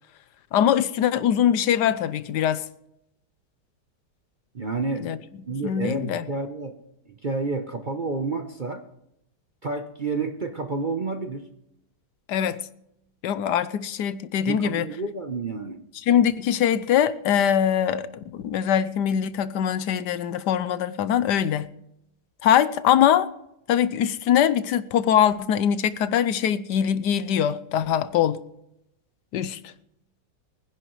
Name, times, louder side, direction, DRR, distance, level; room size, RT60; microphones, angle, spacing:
voice 1, 0.5-2.6 5.0-5.2 5.6-6.2 12.3-12.6 13.2-14.9 16.1-21.7 22.4-23.3 23.7-28.4 29.3-29.7, left 9 dB, 75° left, 1.3 m, -22 dB
voice 2, 4.5-5.1 5.4-6.8 7.1-8.9 9.6-11.5 14.4-15.8, right 3 dB, 40° right, 0.7 m, -30 dB
23.5 x 10.5 x 3.2 m
omnidirectional pair, 1.8 m